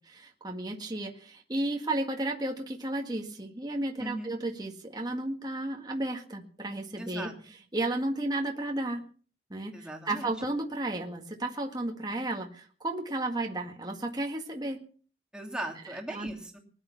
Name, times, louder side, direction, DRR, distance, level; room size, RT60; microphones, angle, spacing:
voice 1, 0.1-7.3 7.7-9.0 9.5-14.8 16.1-16.3, right 2 dB, 20° right, 2 dB, 1.8 m, -33 dB
voice 2, 4.0-4.3 7.0-7.3 9.7-10.3 15.3-16.6, right 1 dB, 5° right, 2 dB, 2.8 m, -38 dB
20.0 x 11.0 x 5.8 m, 0.43 s
head